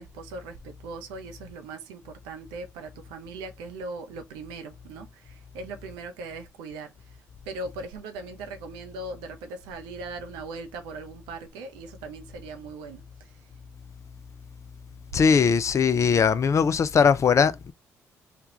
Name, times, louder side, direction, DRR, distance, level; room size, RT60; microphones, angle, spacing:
voice 1, 0.0-7.2 7.5-13.5, right 3 dB, 75° right, 0.6 m, -39 dB
voice 2, 15.1-17.7, left 6 dB, 40° left, 0.4 m, -20 dB
3.3 x 2.3 x 2.9 m
hypercardioid pair, 45°, 8 cm